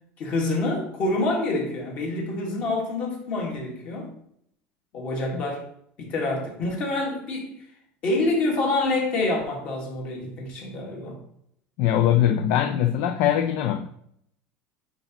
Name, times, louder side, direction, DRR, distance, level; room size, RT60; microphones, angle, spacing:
voice 1, 0.2-4.1 4.9-5.7 6.0-7.6 8.0-11.2, left 2 dB, 35° left, 1.7 m, -27 dB
voice 2, 11.8-13.9, left 10 dB, 55° left, 0.4 m, -22 dB
9.2 x 3.9 x 3.0 m
cardioid pair, 175°, 4 cm